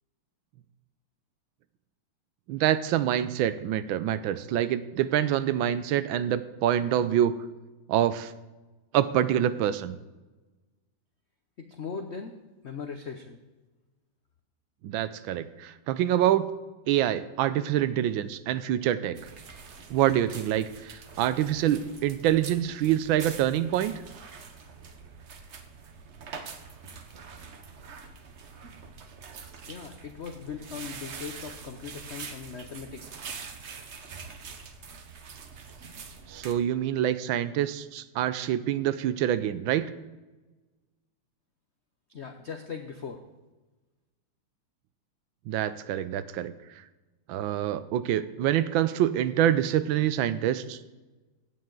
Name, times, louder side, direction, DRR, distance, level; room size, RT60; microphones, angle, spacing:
voice 1, 2.5-7.3 7.9-8.3 8.9-10.0 14.8-16.5 16.9-19.2 19.9-23.9 36.3-39.9 45.5-46.5 47.3-50.8, right 11 dB, 75° right, 14 dB, 1.3 m, -26 dB
voice 2, 11.6-12.4 12.6-13.4 29.7-33.3 42.1-43.2, left 6 dB, 80° left, 6 dB, 0.6 m, -39 dB
sound 1, 19.1-36.5, right 5 dB, 50° right, 0.8 m, -44 dB
16.0 x 8.6 x 3.9 m, 1.2 s
omnidirectional pair, 2.2 m